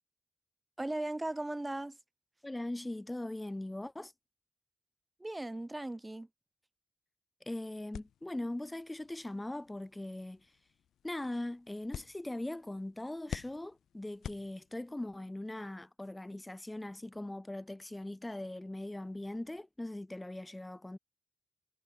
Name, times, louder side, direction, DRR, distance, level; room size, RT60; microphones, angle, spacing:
voice 1, 0.8-2.0 5.2-6.3, right 1 dB, 20° right, 4.7 m, -37 dB
voice 2, 2.4-4.1 7.4-10.5 11.0-21.0, left 1 dB, 15° left, 4.3 m, -40 dB
sound 1, 7.9-15.1, left 10 dB, 75° left, 1.9 m, -49 dB
hypercardioid pair, 40°, 0 cm